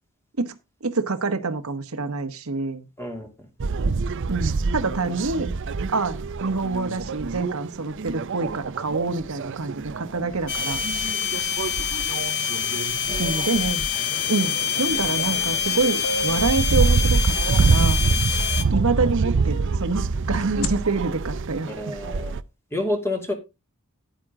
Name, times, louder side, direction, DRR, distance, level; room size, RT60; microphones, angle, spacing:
voice 1, 0.8-2.8 4.3-5.5 5.9-10.8 13.2-13.9 14.3-18.0 18.7-22.0, right 3 dB, 75° right, 1.2 m, -26 dB
voice 2, 3.0-3.3 13.1-13.4 21.7-22.4 22.7-23.3, left 2 dB, 10° left, 2.6 m, -29 dB
sound 1, 3.6-22.4, right 4 dB, 55° right, 0.5 m, -26 dB
sound 2, 10.5-18.6, left 8 dB, 55° left, 1.2 m, -26 dB
sound 3, 16.0-17.8 20.4-20.7, equal, 80° left, 1.6 m, -33 dB
10.5 x 9.0 x 3.7 m
head